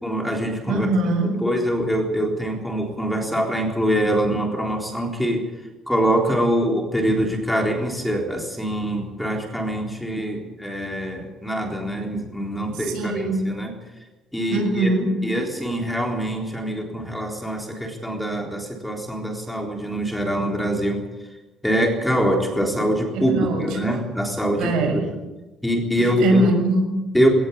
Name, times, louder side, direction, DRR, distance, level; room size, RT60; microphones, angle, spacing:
voice 1, 0.0-0.9 1.2-5.4 5.9-13.7 14.3-14.9 15.2-21.0 21.6-25.0 25.6-26.5 27.1-27.3, equal, 5° left, 1 dB, 3.8 m, -24 dB
voice 2, 0.6-1.4 12.7-13.5 14.5-15.3 23.1-23.8 24.6-25.1 26.0-27.0, right 2 dB, 85° right, 5 dB, 6.4 m, -22 dB
20.0 x 19.0 x 8.5 m, 1.1 s
cardioid pair, 165°, 0 cm